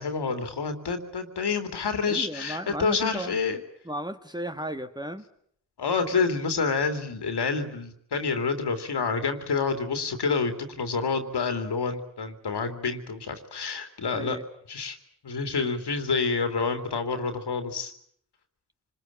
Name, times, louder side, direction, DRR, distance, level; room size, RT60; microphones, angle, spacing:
voice 1, 0.0-3.6 5.8-14.4 14.7-15.0 15.2-17.9, left 4 dB, 75° left, 7 dB, 3.0 m, -28 dB
voice 2, 2.0-3.4 3.8-5.2 14.1-14.4, right 1 dB, 10° right, 8 dB, 1.7 m, -34 dB
26.0 x 20.5 x 8.7 m, 0.67 s
cardioid pair, 40°, 41 cm